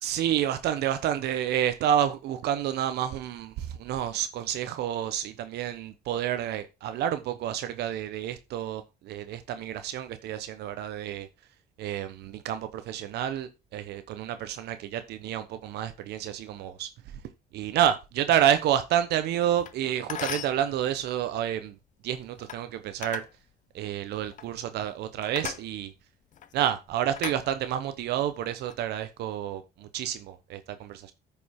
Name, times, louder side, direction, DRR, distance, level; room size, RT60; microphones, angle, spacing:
voice 1, 0.0-11.3 11.8-16.9 17.5-21.7 22.0-23.2 23.7-25.9 26.5-31.1, right 10 dB, 75° right, 0.9 m, -29 dB
sound 1, 19.6-19.7 20.1-20.6 22.4-22.6 23.0-23.3 24.2-24.5 25.4-25.6 26.3-26.5 27.2-27.9 28.5-28.8, left 9 dB, 50° left, 0.7 m, -37 dB
9.3 x 5.4 x 4.4 m
cardioid pair, 110°, 17 cm